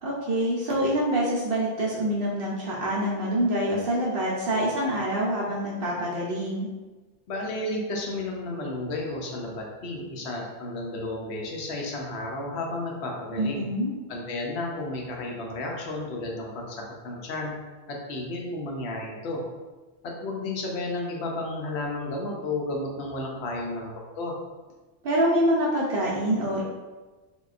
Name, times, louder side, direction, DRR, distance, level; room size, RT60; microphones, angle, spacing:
voice 1, 0.0-6.7 13.4-13.9 25.0-26.6, right 1 dB, 65° right, -5 dB, 0.7 m, -26 dB
voice 2, 7.3-13.7 14.1-17.5 17.9-19.4 20.0-24.3, left 2 dB, 80° left, -1 dB, 0.9 m, -32 dB
3.6 x 2.2 x 2.4 m, 1.2 s
omnidirectional pair, 1.1 m